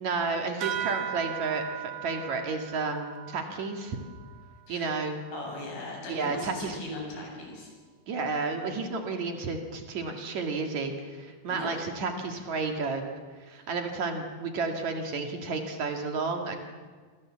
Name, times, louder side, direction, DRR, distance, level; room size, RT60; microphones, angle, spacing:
voice 1, 0.0-4.0 4.7-5.2 6.1-6.8 8.1-13.0 13.4-16.6, right 4 dB, 55° right, 3 dB, 3.3 m, -31 dB
sound 1, 0.6-5.6, right 11 dB, 75° right, 3.4 m, -38 dB
voice 2, 5.3-7.7 11.5-11.8 13.5-13.7, left 2 dB, 90° left, -1 dB, 9.9 m, -39 dB
26.5 x 26.5 x 7.6 m, 1.5 s
omnidirectional pair, 4.2 m